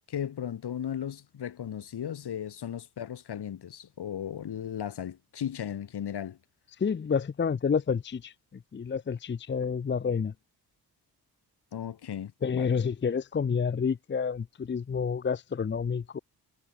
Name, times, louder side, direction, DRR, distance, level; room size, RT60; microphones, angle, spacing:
voice 1, 0.1-6.4 11.7-12.7, left 9 dB, 75° left, 5.8 m, -36 dB
voice 2, 6.8-8.3 8.7-10.3 12.4-16.2, left 6 dB, 30° left, 0.7 m, -29 dB
cardioid pair, 115°, 39 cm